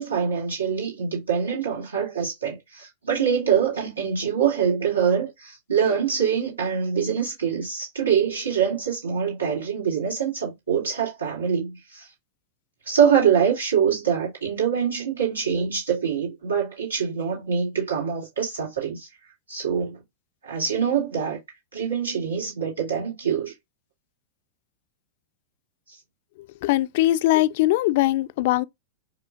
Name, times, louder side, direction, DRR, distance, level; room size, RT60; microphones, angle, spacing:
voice 1, 0.0-12.1 12.9-19.1 19.5-20.0 20.4-21.4 21.7-23.5, right 7 dB, 90° right, 2.4 m, -24 dB
voice 2, 26.6-28.6, left 16 dB, 55° left, 0.3 m, -21 dB
5.1 x 3.0 x 2.4 m
hypercardioid pair, 100°, 0 cm